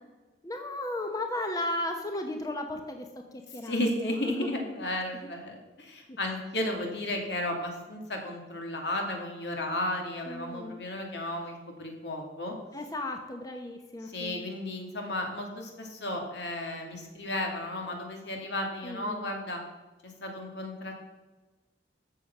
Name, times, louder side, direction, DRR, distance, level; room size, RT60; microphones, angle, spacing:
voice 1, 0.4-3.1 3.3-4.5 5.1-5.3 6.1-6.2 10.3-10.8 12.7-14.5 18.8-19.3, left 1 dB, 20° left, 4 dB, 0.9 m, -35 dB
voice 2, 3.6-12.5 14.0-19.6 20.2-21.0, left 1 dB, 75° left, 2 dB, 2.6 m, -34 dB
14.0 x 7.0 x 6.0 m, 1.2 s
head